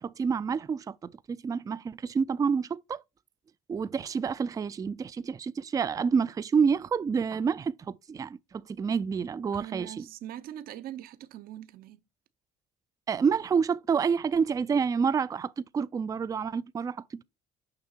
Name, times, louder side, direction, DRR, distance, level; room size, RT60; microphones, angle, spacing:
voice 1, 0.0-3.0 3.7-10.1 13.1-17.2, right 6 dB, 20° right, 0.3 m, -28 dB
voice 2, 9.5-12.0, right 12 dB, 60° right, 0.6 m, -42 dB
6.7 x 5.5 x 4.3 m
cardioid pair, 110°, 17 cm